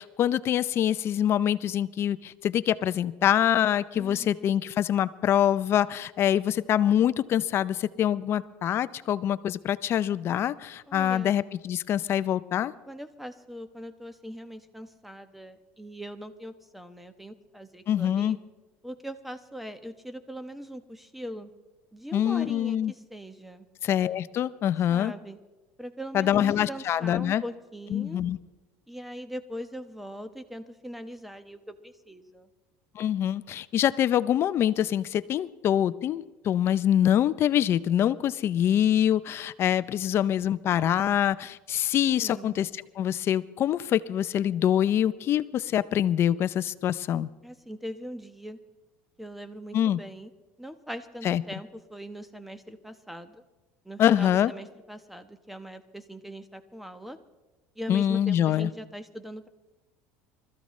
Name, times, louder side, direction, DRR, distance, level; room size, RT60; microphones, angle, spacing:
voice 1, 0.0-12.7 17.9-18.4 22.1-22.9 23.8-25.1 26.1-27.4 27.9-28.4 33.0-42.7 43.0-47.3 49.7-50.0 51.2-51.4 54.0-54.5 57.9-58.7, left 10 dB, 45° left, 15 dB, 0.5 m, -25 dB
voice 2, 3.9-4.5 10.9-11.3 12.9-18.4 18.8-21.5 21.9-23.7 24.9-25.4 25.8-28.2 28.9-32.5 42.2-42.6 47.4-48.6 49.2-50.3 50.6-53.4 53.8-57.2 57.8-59.5, equal, ahead, 10 dB, 1.1 m, -41 dB
25.0 x 14.0 x 3.2 m, 1.1 s
supercardioid pair, 110°, 6 cm